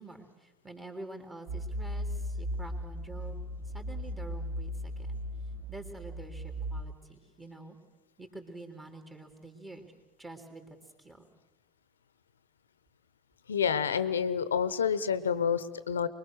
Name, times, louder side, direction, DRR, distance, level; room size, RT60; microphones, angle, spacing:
voice 1, 0.0-3.4 3.7-5.2 5.7-7.8 8.2-9.9 10.2-11.3, right 2 dB, 15° right, 4 dB, 3.7 m, -47 dB
sound 1, 1.5-6.8, equal, 50° right, 1.7 m, -37 dB
voice 2, 13.5-16.1, left 7 dB, 85° left, 15 dB, 0.9 m, -28 dB
24.5 x 22.0 x 6.5 m, 1.1 s
hypercardioid pair, 75°, 0 cm